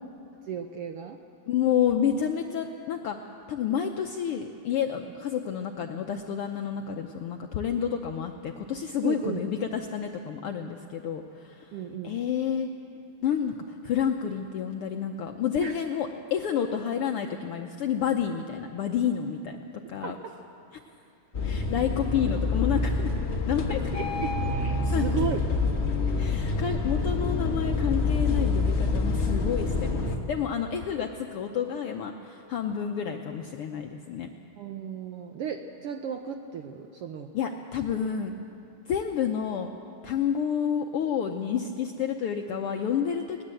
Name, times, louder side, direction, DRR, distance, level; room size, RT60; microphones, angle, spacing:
voice 1, 0.4-1.2 9.0-9.4 11.7-12.2 15.6-15.7 20.0-20.1 23.7-25.4 34.6-37.3, right 7 dB, 70° right, 5 dB, 1.4 m, -34 dB
voice 2, 1.5-3.2 3.5-11.8 12.0-12.7 13.2-19.6 19.9-20.2 21.4-23.1 23.5-23.9 24.9-25.3 26.2-34.3 37.3-38.3 38.9-39.7 40.0-43.4, left 8 dB, 75° left, 4 dB, 1.3 m, -29 dB
sound 1, 21.3-30.2, left 3 dB, 50° left, 0.7 m, -27 dB
20.5 x 19.0 x 7.7 m, 2.7 s
omnidirectional pair, 3.4 m